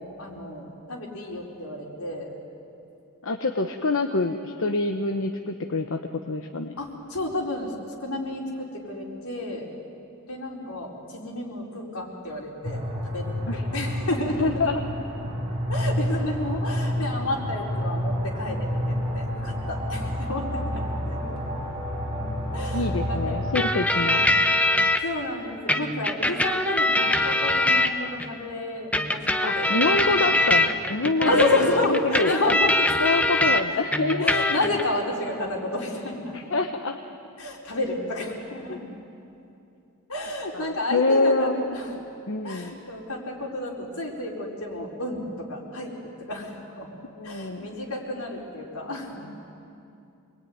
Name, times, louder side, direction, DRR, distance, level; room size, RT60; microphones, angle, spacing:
voice 1, 0.0-2.3 6.8-7.7 8.0-9.7 10.3-14.7 15.7-21.2 22.5-23.2 25.0-29.2 29.5-29.8 31.2-32.9 33.7-33.8 34.2-36.4 37.4-38.9 40.1-41.9 42.4-45.9 46.2-46.9 47.2-49.3, left 1 dB, 80° left, -1 dB, 4.6 m, -30 dB
voice 2, 3.2-6.0 6.3-6.8 13.5-13.6 14.4-14.8 22.7-24.3 29.4-32.5 33.0-34.5 36.3-37.0 38.7-38.8 40.5-41.8 42.3-42.8 47.2-47.7, left 3 dB, 65° left, 5 dB, 1.1 m, -26 dB
sound 1, 12.6-23.6, equal, 25° right, 5.6 m, -29 dB
sound 2, 23.5-25.0 25.7-28.3 28.9-33.6 33.9-34.8, left 1 dB, 5° left, 0.9 m, -23 dB
26.0 x 21.0 x 9.5 m, 2.6 s
head